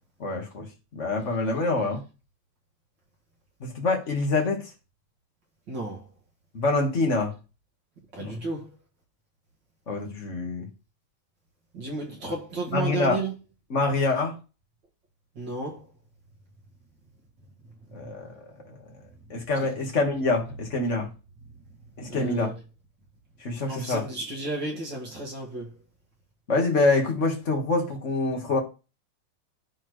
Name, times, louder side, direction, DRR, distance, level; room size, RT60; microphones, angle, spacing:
voice 1, 0.2-0.7 0.9-2.0 3.6-4.6 6.5-7.3 8.2-8.4 9.9-10.7 12.7-13.2 13.7-14.4 17.9-18.3 19.3-21.1 22.0-22.5 23.4-24.0 26.5-28.6, left 3 dB, 35° left, 1.3 m, -25 dB
voice 2, 5.7-6.0 8.1-8.7 11.7-13.3 15.4-15.8 22.1-22.5 23.7-25.7, right 3 dB, 40° right, 2.4 m, -32 dB
12.5 x 4.3 x 3.2 m
omnidirectional pair, 3.6 m